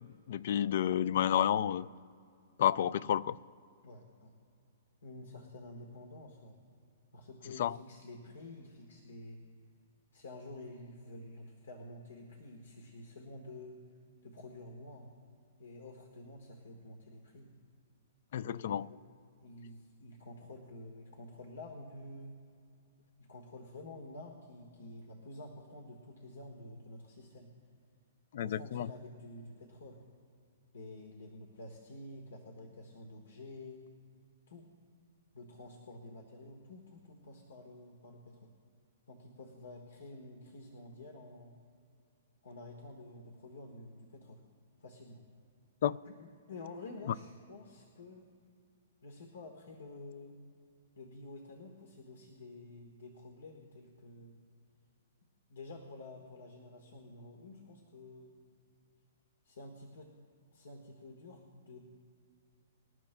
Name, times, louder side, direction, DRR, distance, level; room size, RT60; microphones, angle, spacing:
voice 1, 0.3-1.9 2.6-3.4 7.6-7.8 18.3-18.9 28.3-28.9 45.8-46.0, left 10 dB, 60° left, 0.3 m, -30 dB
voice 2, 3.8-4.3 5.0-6.6 7.1-9.4 10.1-13.8 14.2-15.1 15.6-17.5 18.3-19.0 19.4-22.4 23.2-27.5 28.4-30.0 30.7-33.8 34.5-34.7 35.3-38.5 39.1-41.6 42.4-44.4 44.8-45.2 46.0-48.2 49.0-50.3 51.0-54.3 55.5-58.3 59.4-60.1 60.5-61.8, left 2 dB, 85° left, 1.4 m, -50 dB
25.0 x 12.5 x 2.2 m
hypercardioid pair, 145°, 0 cm